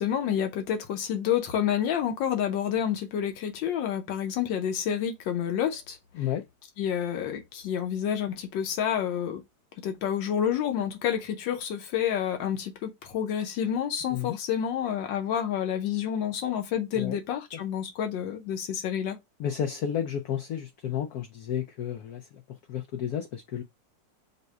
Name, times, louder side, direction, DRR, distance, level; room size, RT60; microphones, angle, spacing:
voice 1, 0.0-6.0 6.8-9.4 9.8-19.2, left 9 dB, 90° left, 1.5 m, -29 dB
voice 2, 19.4-22.4 22.7-23.6, left 9 dB, 70° left, 1.0 m, -32 dB
5.3 x 2.1 x 4.5 m
omnidirectional pair, 2.0 m